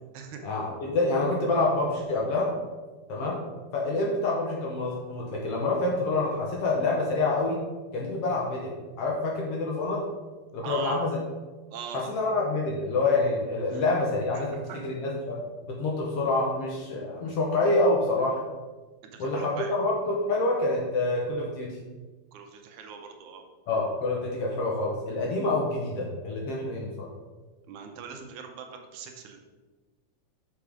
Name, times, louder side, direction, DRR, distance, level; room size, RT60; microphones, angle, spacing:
voice 1, 0.4-2.5 3.1-3.4 3.7-7.6 7.9-8.7 9.0-10.0 10.5-11.1 11.9-15.4 15.7-18.4 19.2-21.7 23.7-27.1, left 2 dB, 65° left, -2 dB, 1.7 m, -27 dB
voice 2, 10.6-11.0 11.7-12.1 13.7-13.8 14.7-14.8 19.1-19.7 22.3-23.4 27.7-29.4, right 6 dB, 75° right, 4 dB, 2.2 m, -40 dB
6.3 x 5.9 x 4.9 m, 1.3 s
omnidirectional pair, 3.6 m